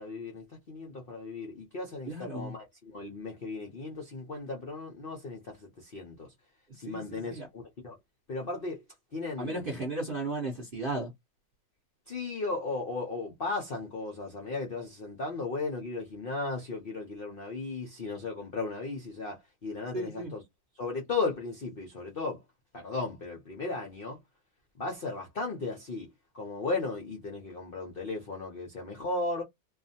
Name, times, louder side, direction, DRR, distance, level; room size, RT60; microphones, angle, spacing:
voice 1, 0.0-6.3 6.8-8.0 8.3-8.8 9.1-9.8 12.1-20.4 20.8-22.4 22.7-24.2 24.8-26.1 26.3-29.4, left 3 dB, 60° left, 0.5 m, -36 dB
voice 2, 2.1-2.5 6.9-7.5 9.4-11.1 19.9-20.3, right 2 dB, 50° right, 0.7 m, -35 dB
2.7 x 2.4 x 2.6 m
omnidirectional pair, 1.9 m